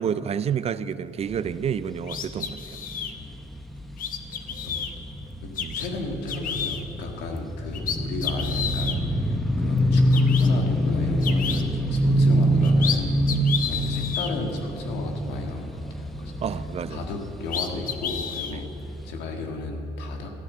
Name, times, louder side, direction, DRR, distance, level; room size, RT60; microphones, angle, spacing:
voice 1, 0.0-2.6 5.6-5.8 16.4-17.0 18.5-18.6, right 8 dB, 40° right, 15 dB, 0.4 m, -29 dB
sound 1, 1.3-18.6 18.9-19.0, equal, ahead, 0.9 m, -25 dB
sound 2, 2.1-3.1 4.0-4.9 5.6-5.9 6.3-6.8 7.4-7.5 7.7-9.0 9.8-9.9 10.1-10.5 11.2-11.6 12.4-13.0 13.3-14.3 17.0-17.1 17.5-18.5, left 8 dB, 55° left, 1.0 m, -30 dB
voice 2, 4.5-4.9 5.4-10.0 10.4-13.1 13.6-16.4 16.9-20.3, left 2 dB, 85° left, 3 dB, 1.8 m, -34 dB
14.0 x 9.3 x 7.3 m, 3.0 s
cardioid pair, 110°, 17 cm